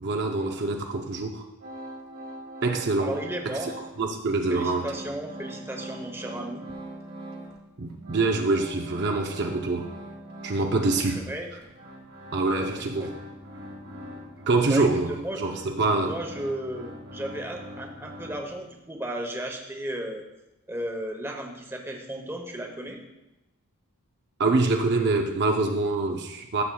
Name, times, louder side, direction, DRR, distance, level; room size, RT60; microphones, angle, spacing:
voice 1, 0.0-1.4 2.6-3.1 4.0-4.9 7.8-9.9 10.4-11.2 12.3-13.2 14.5-15.1 15.4-16.2 24.4-26.6, right 3 dB, 50° right, 3 dB, 0.6 m, -25 dB
sound 1, 1.6-4.0 4.3-7.6 7.9-18.8, right 1 dB, 70° right, 1.9 m, -42 dB
voice 2, 3.0-3.8 4.5-6.6 11.2-11.5 13.0-13.1 14.7-15.4 16.0-20.3 20.7-23.0, right 1 dB, 10° right, 2 dB, 0.9 m, -34 dB
14.0 x 7.2 x 2.3 m, 0.98 s
head